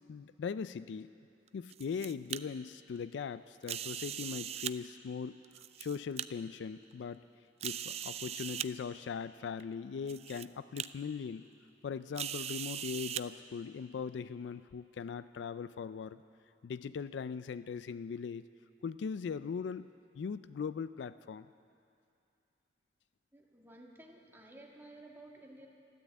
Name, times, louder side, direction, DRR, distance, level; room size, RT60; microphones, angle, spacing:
voice 1, 0.1-1.1 1.5-5.4 5.8-7.2 7.6-11.5 11.8-16.2 16.6-18.4 18.8-19.9 20.1-21.5, left 6 dB, 75° left, 15 dB, 0.3 m, -40 dB
sound 1, 1.5-2.4 3.6-4.7 5.4-6.3 6.9-7.0 7.6-8.7 9.6-9.7 10.1-10.5 10.8-10.9 12.2-13.2, right 10 dB, 35° right, 0.3 m, -39 dB
voice 2, 23.3-25.7, right 1 dB, 10° right, -1 dB, 1.7 m, -54 dB
13.5 x 11.5 x 8.3 m, 2.5 s
head